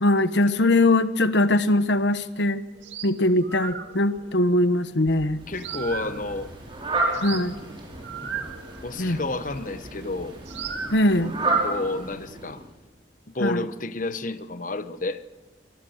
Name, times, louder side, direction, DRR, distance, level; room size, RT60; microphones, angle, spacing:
voice 1, 0.0-2.6 3.0-5.4 7.2-7.6 9.0-9.2 10.9-11.3 13.4-13.6, left 1 dB, 70° left, 12 dB, 1.1 m, -21 dB
sound 1, 2.7-10.1 10.5-11.7, right 6 dB, 90° right, 1.9 m, -38 dB
Fowl, 5.4-12.7, right 2 dB, 30° right, 5.5 m, -31 dB
voice 2, 5.5-6.5 8.8-10.4 11.6-12.6 13.3-15.2, left 2 dB, 45° left, 12 dB, 1.0 m, -30 dB
25.0 x 20.5 x 6.5 m, 1.1 s
head